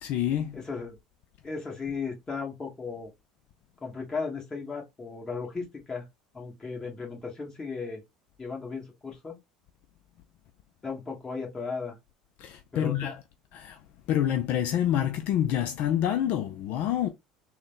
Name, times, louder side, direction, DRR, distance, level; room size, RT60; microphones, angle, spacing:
voice 1, 0.0-0.6 12.4-13.2 13.5-13.8 14.1-17.1, left 11 dB, 60° left, 0.4 m, -27 dB
voice 2, 0.5-1.0 1.4-3.1 3.8-6.0 6.3-8.0 8.4-9.4 10.8-12.0 12.7-13.1, left 4 dB, 20° left, 1.9 m, -36 dB
3.8 x 2.2 x 3.8 m
hypercardioid pair, 75°, 3 cm